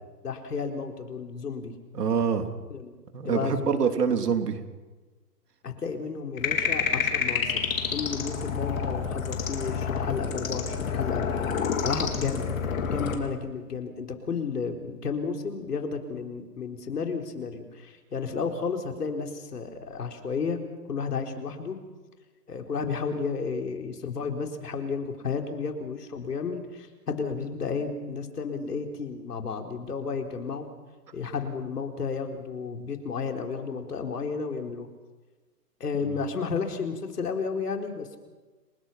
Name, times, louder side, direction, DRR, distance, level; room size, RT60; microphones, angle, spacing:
voice 1, 0.2-1.7 2.7-2.9 3.2-3.9 5.6-11.2 11.8-12.5 12.9-20.6 20.9-21.8 22.5-30.7 31.1-34.9 35.8-38.2, left 5 dB, 75° left, 4 dB, 4.2 m, -32 dB
voice 2, 1.9-2.5 3.1-4.6 36.0-36.2, right 6 dB, 75° right, 5 dB, 3.5 m, -25 dB
sound 1, 6.4-13.2, left 6 dB, 55° left, 4.2 m, -29 dB
30.0 x 19.0 x 5.8 m, 1.3 s
hypercardioid pair, 160°, 47 cm